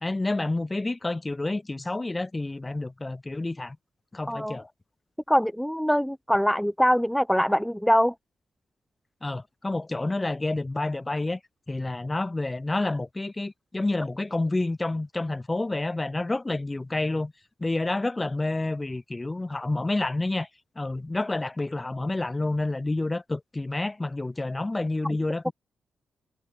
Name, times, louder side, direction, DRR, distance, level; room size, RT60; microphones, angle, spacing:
voice 1, 0.0-3.8 4.1-4.7 9.2-11.4 11.7-17.3 17.6-20.5 20.7-25.5, left 2 dB, 20° left, 1.5 m, -29 dB
voice 2, 5.3-8.1, equal, ahead, 1.2 m, -23 dB
cardioid pair, 85°, 0 cm